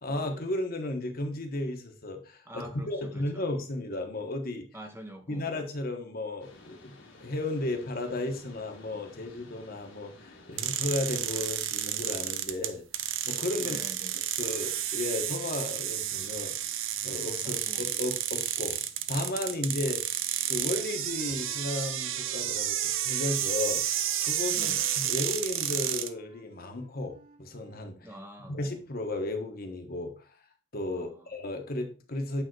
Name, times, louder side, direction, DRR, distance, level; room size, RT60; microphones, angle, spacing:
voice 1, 0.0-4.7 5.3-13.8 14.4-16.5 17.0-18.8 19.1-20.0 20.5-23.8 24.2-28.1 28.5-30.5 30.7-32.4, left 2 dB, 45° left, 5 dB, 1.2 m, -34 dB
voice 2, 2.5-3.4 4.7-5.5 13.6-14.2 17.4-17.8 24.5-24.9 28.0-28.6 30.9-31.3, right 1 dB, 10° right, 5 dB, 0.9 m, -46 dB
sound 1, 6.4-11.5, left 2 dB, 65° left, 1.6 m, -53 dB
sound 2, 10.6-26.1, right 11 dB, 80° right, 0.7 m, -31 dB
Wind instrument woodwind instrument, 20.3-23.7 24.0-27.9, right 2 dB, 40° right, 2.1 m, -55 dB
9.0 x 3.6 x 4.6 m, 0.36 s
head